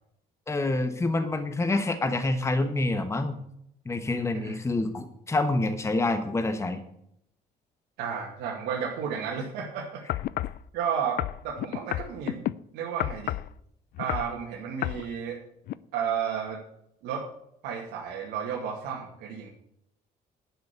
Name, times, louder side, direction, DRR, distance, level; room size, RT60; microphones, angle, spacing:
voice 1, 0.5-3.4 3.9-6.8, left 2 dB, 15° left, 8 dB, 1.1 m, -27 dB
voice 2, 8.0-10.0 10.7-12.4 12.7-13.3 14.0-15.4 15.9-16.6 17.0-17.3 17.6-19.5, right 7 dB, 90° right, -2 dB, 2.3 m, -32 dB
sound 1, 10.1-10.6 11.2-12.5 13.0-13.5 14.0-14.3 14.8-15.0 15.7-15.8, left 14 dB, 65° left, 0.5 m, -30 dB
11.5 x 6.3 x 8.2 m, 0.74 s
cardioid pair, 110°, 17 cm